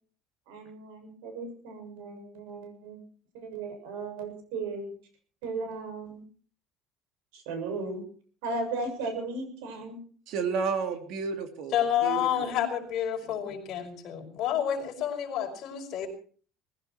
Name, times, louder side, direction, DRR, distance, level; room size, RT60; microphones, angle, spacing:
voice 1, 0.5-3.0 3.3-4.9 5.4-6.2 7.3-8.0 8.4-10.0, right 3 dB, 90° right, 6 dB, 7.0 m, -36 dB
voice 2, 10.3-11.7 12.0-12.5, right 5 dB, 50° right, 6 dB, 2.7 m, -31 dB
voice 3, 11.7-16.1, left 10 dB, 40° left, 2 dB, 5.5 m, -29 dB
20.0 x 16.0 x 4.5 m, 0.43 s
cardioid pair, 175°, 0 cm